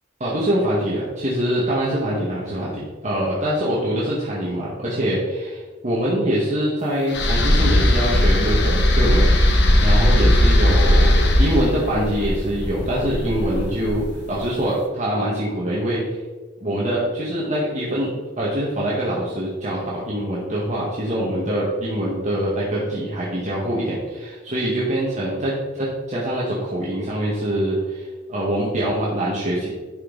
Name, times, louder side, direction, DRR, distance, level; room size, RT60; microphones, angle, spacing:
voice 1, 0.2-9.3 9.8-16.2 16.6-18.1 18.4-29.7, right 1 dB, 40° right, -7 dB, 1.8 m, -24 dB
sound 1, 7.1-14.3, left 1 dB, 60° left, 1.2 m, -18 dB
11.0 x 5.5 x 4.1 m, 1.3 s
head